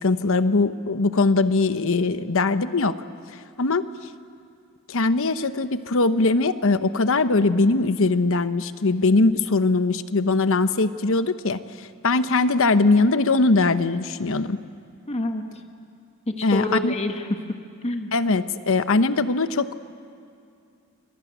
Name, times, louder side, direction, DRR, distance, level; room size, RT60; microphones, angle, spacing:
voice 1, 0.0-3.0 3.6-3.8 4.9-14.6 16.4-16.9 18.1-19.7, left 3 dB, 65° left, 11 dB, 1.0 m, -21 dB
voice 2, 15.1-15.7 16.3-17.4 17.8-18.1, left 1 dB, 30° left, 5 dB, 1.4 m, -27 dB
26.5 x 21.5 x 9.4 m, 2.5 s
head